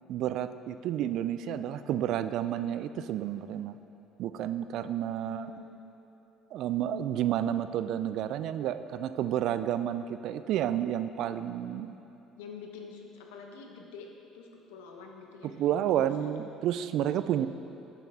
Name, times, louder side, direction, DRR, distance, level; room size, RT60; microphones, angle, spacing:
voice 1, 0.1-3.8 4.2-5.5 6.5-12.0 15.4-17.5, right 11 dB, 65° right, 12 dB, 0.3 m, -30 dB
voice 2, 5.2-5.8 12.4-14.1 14.3-16.4, left 5 dB, 80° left, 2 dB, 0.9 m, -47 dB
10.0 x 7.0 x 3.6 m, 2.9 s
hypercardioid pair, 60°, 0 cm